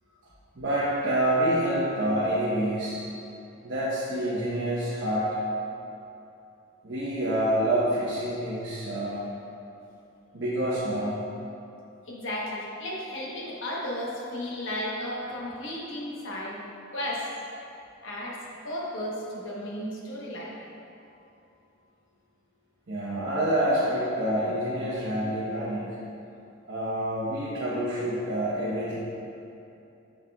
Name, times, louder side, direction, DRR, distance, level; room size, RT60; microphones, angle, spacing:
voice 1, 0.5-3.0 3.6-5.3 6.8-9.3 10.3-11.2 22.9-25.9 26.7-28.9, right 1 dB, 60° right, -9 dB, 1.0 m, -27 dB
voice 2, 12.1-16.6 16.9-17.3 18.0-18.4 18.6-20.6, left 1 dB, 65° left, -3 dB, 1.1 m, -34 dB
7.5 x 6.5 x 2.3 m, 2.8 s
head